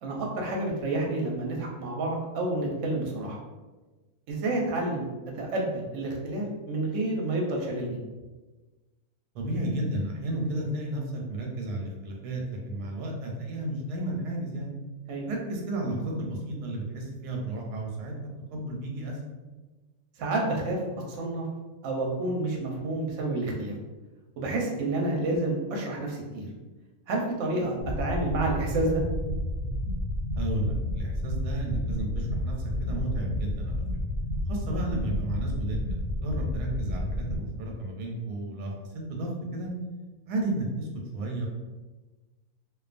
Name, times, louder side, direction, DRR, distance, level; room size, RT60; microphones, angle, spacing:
voice 1, 0.0-3.4 4.3-5.1 5.4-8.0 15.1-15.3 20.2-20.8 21.2-21.5 21.8-23.7 24.4-26.5 27.1-29.0, right 2 dB, 65° right, -1 dB, 0.8 m, -29 dB
voice 2, 9.3-14.7 15.2-19.2 30.4-32.5 32.8-33.8 34.5-39.7 40.3-40.9 41.1-41.5, right 1 dB, 90° right, 0 dB, 1.1 m, -33 dB
sound 1, 27.8-37.4, left 1 dB, 55° left, 0.7 m, -31 dB
2.4 x 2.3 x 2.4 m, 1.2 s
omnidirectional pair, 1.6 m